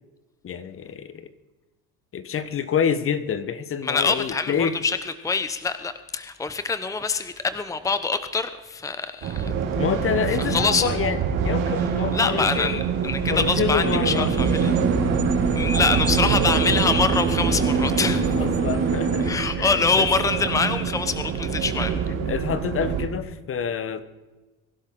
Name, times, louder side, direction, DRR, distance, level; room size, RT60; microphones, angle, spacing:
voice 1, 0.4-1.3 2.1-4.8 9.8-11.2 11.4-12.8 13.3-14.3 18.3-19.3 19.6-20.1 22.2-24.0, left 7 dB, 40° left, 12 dB, 1.2 m, -27 dB
voice 2, 3.8-5.0 5.2-9.5 10.4-10.9 12.1-14.7 15.6-18.5 19.2-22.0, left 4 dB, 10° left, 11 dB, 0.8 m, -25 dB
sound 1, 9.2-23.1, right 7 dB, 75° right, 3.6 m, -26 dB
sound 2, 13.8-19.3, right 4 dB, 45° right, 4.5 m, -25 dB
23.0 x 11.5 x 3.8 m, 1.2 s
supercardioid pair, 90°, 33 cm